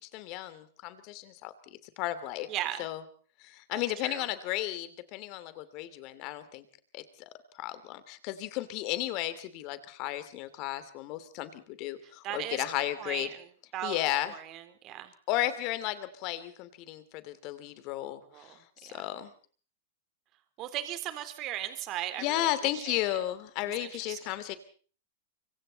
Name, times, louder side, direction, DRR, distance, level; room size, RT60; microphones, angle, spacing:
voice 1, 0.1-1.5 2.0-2.5 2.8-3.0 3.4-6.6 6.9-7.3 7.6-13.3 13.8-14.3 15.3-18.2 18.8-19.3 22.2-24.6, left 14 dB, 45° left, 13 dB, 2.9 m, -34 dB
voice 2, 2.5-2.9 3.7-4.3 12.0-12.7 13.0-14.0 14.3-15.1 18.3-19.1 20.6-23.2 23.6-24.3, right 13 dB, 35° right, 10 dB, 3.7 m, -38 dB
25.0 x 24.5 x 4.2 m, 0.43 s
hypercardioid pair, 135°, 0 cm